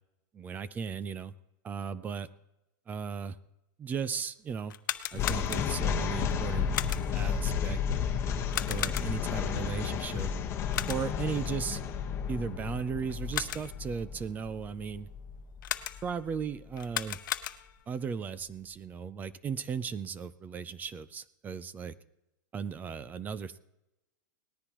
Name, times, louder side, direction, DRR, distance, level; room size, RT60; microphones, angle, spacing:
voice 1, 0.3-1.3 1.6-2.3 2.9-3.4 3.8-4.8 5.1-6.7 7.1-7.8 8.7-10.3 10.9-11.8 12.3-15.1 16.0-17.2 17.9-21.9 22.5-23.6, right 6 dB, 15° right, 17 dB, 0.4 m, -36 dB
sound 1, 4.6-6.0 6.7-7.3 8.5-9.4 10.7-11.3 13.1-13.9 15.6-16.3 16.8-17.9, left 11 dB, 85° left, 0.8 m, -36 dB
sound 2, 5.1-16.4, left 7 dB, 25° left, 1.3 m, -32 dB
19.0 x 13.5 x 3.0 m, 0.90 s
supercardioid pair, 150°, 10 cm